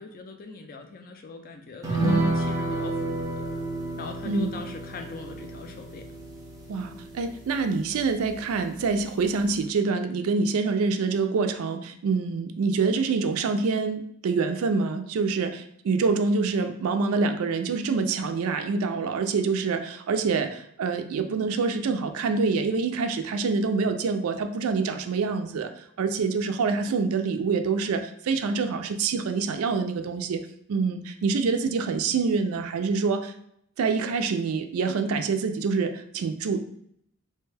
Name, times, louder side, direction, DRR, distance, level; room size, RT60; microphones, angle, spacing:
voice 1, 0.0-3.5 4.0-6.1, left 3 dB, 40° left, 5 dB, 0.4 m, -41 dB
sound 1, 1.8-8.6 8.9-9.0 9.4-9.5, right 2 dB, 15° right, 0.6 m, -30 dB
voice 2, 6.7-30.4 30.7-33.3 33.8-36.7, right 4 dB, 75° right, 8 dB, 0.3 m, -26 dB
3.2 x 2.2 x 3.2 m, 0.71 s
head